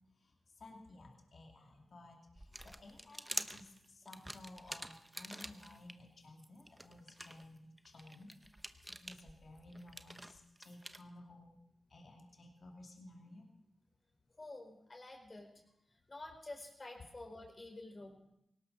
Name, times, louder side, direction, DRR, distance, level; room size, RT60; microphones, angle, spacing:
voice 1, 0.2-8.3 8.9-11.6 11.9-13.5, left 2 dB, 65° left, 1 dB, 2.5 m, -56 dB
sound 1, 2.4-5.9 6.4-11.0, right 1 dB, 15° right, 1.0 m, -47 dB
voice 2, 14.4-15.5 16.1-18.1, left 2 dB, 40° left, 2 dB, 4.9 m, -49 dB
18.0 x 18.0 x 4.1 m, 0.81 s
cardioid pair, 45°, 0 cm